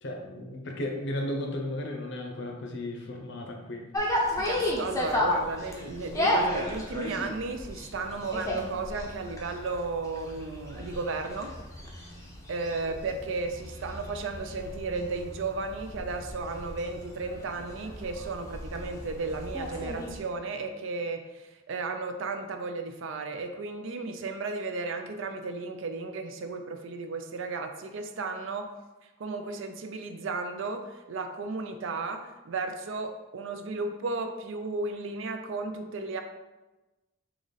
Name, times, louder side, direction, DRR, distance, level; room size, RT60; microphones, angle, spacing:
voice 1, 0.0-3.8, left 1 dB, 55° left, 2 dB, 0.7 m, -34 dB
sound 1, 3.9-20.2, left 1 dB, 15° left, 0.5 m, -34 dB
voice 2, 4.4-11.5 12.5-28.7 29.2-36.2, right 3 dB, 60° right, 6 dB, 0.4 m, -34 dB
3.8 x 3.0 x 4.0 m, 1.1 s
head